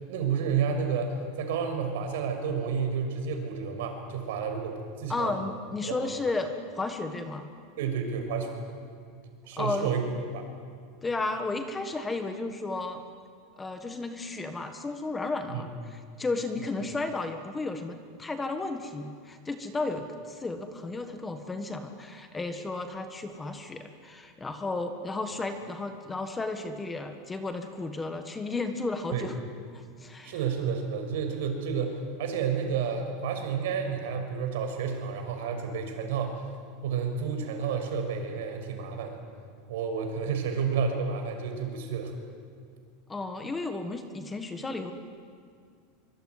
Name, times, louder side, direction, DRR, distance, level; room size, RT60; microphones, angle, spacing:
voice 1, 0.1-5.3 5.8-6.1 7.8-8.6 9.4-10.1 10.3-10.5 15.5-15.6 29.1-29.3 30.2-36.4 36.8-39.2 39.7-42.1, right 6 dB, 70° right, 5 dB, 6.0 m, -30 dB
voice 2, 5.1-7.5 9.6-9.9 11.0-13.0 13.6-29.4 29.7-30.3 43.1-44.9, left 3 dB, 10° left, 7 dB, 1.4 m, -33 dB
24.5 x 24.5 x 9.6 m, 2.2 s
supercardioid pair, 170°, 0 cm